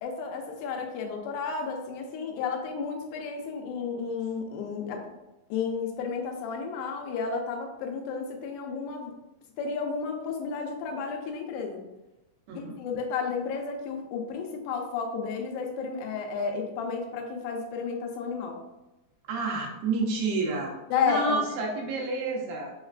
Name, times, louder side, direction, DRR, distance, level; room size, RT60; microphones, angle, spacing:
voice 1, 0.0-5.0 5.5-9.1 9.6-11.8 12.5-18.6 20.9-21.4, left 5 dB, 90° left, 2 dB, 2.7 m, -32 dB
voice 2, 19.3-20.7 21.0-22.7, right 3 dB, 80° right, -1 dB, 2.7 m, -29 dB
6.5 x 2.2 x 2.4 m, 0.99 s
omnidirectional pair, 4.6 m